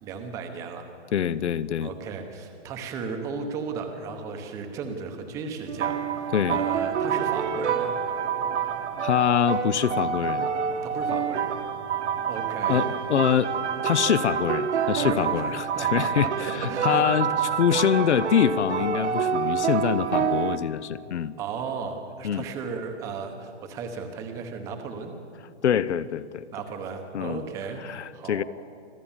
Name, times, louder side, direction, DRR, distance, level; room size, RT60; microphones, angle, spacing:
voice 1, 0.0-0.9 1.8-7.9 10.8-11.5 12.3-13.0 15.0-17.3 21.4-25.1 26.5-27.8 28.1-28.4, right 5 dB, 10° right, 5 dB, 0.9 m, -35 dB
voice 2, 1.1-1.9 6.3-6.6 9.0-10.5 12.7-13.5 13.8-21.3 22.2-22.4 25.6-26.4 27.1-27.4 27.8-28.4, left 9 dB, 75° left, 18 dB, 0.9 m, -25 dB
sound 1, 5.7-20.6, right 7 dB, 70° right, 1.6 m, -27 dB
25.5 x 15.5 x 7.3 m, 2.5 s
hypercardioid pair, 170°, 35 cm